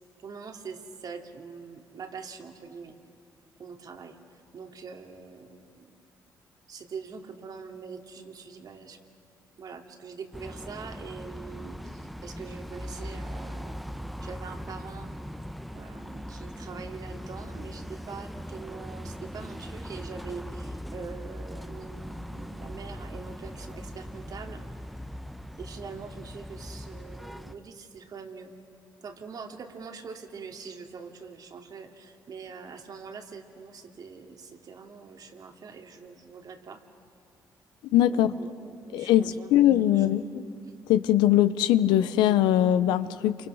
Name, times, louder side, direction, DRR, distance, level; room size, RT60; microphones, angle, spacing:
voice 1, 0.2-3.0 3.6-4.2 4.5-5.9 6.7-9.0 9.6-13.8 14.2-15.1 15.7-24.6 25.6-28.5 29.0-36.8 38.1-40.1, right 5 dB, 60° right, 4 dB, 2.7 m, -43 dB
sound 1, 10.3-27.5, equal, ahead, 1.0 m, -40 dB
voice 2, 37.9-38.4 38.9-40.2 40.9-43.4, left 12 dB, 90° left, 13 dB, 0.8 m, -21 dB
28.5 x 25.5 x 6.4 m, 2.6 s
supercardioid pair, 70°, 8 cm